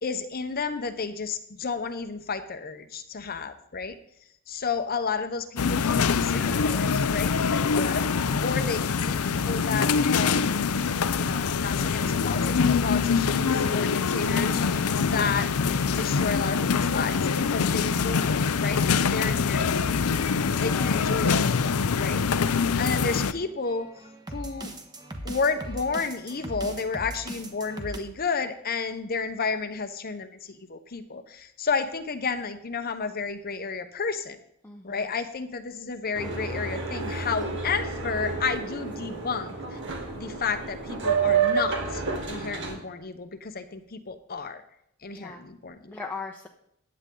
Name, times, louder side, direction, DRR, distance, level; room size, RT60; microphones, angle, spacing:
voice 1, 0.0-4.0 4.5-8.1 8.4-10.6 11.1-15.5 15.8-17.2 17.5-21.5 22.0-22.2 22.5-23.9 24.3-24.7 25.2-34.4 34.8-39.8 40.2-44.6 45.0-45.9, left 5 dB, 40° left, 9 dB, 0.8 m, -32 dB
sound 1, 5.6-23.3, left 5 dB, 75° left, 0.6 m, -24 dB
voice 2, 20.4-21.2 34.6-35.1 45.1-45.4 45.9-46.5, left 4 dB, 10° left, 0 dB, 0.8 m, -42 dB
sound 2, 21.0-28.0, right 1 dB, 20° right, 1.3 m, -41 dB
Boat Water vehicle, 36.1-42.7, right 5 dB, 55° right, 2.3 m, -29 dB
15.0 x 9.7 x 3.8 m, 0.74 s
head